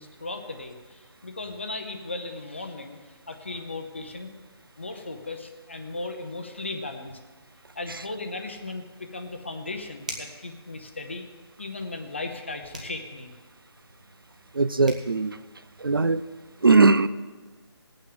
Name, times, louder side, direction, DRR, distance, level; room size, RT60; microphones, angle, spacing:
voice 1, 0.0-3.0 3.3-4.3 4.8-7.2 7.8-11.2 11.6-13.3, left 2 dB, 25° left, 6 dB, 0.8 m, -36 dB
sound 1, 10.0-10.4 12.7-13.0 14.5-14.6 14.8-15.1, right 1 dB, 15° right, 0.7 m, -38 dB
voice 2, 14.5-15.4 15.8-16.2 16.6-17.1, right 3 dB, 55° right, 14 dB, 0.4 m, -20 dB
19.0 x 8.6 x 3.9 m, 1.3 s
figure-of-eight pair, 180°, 14 cm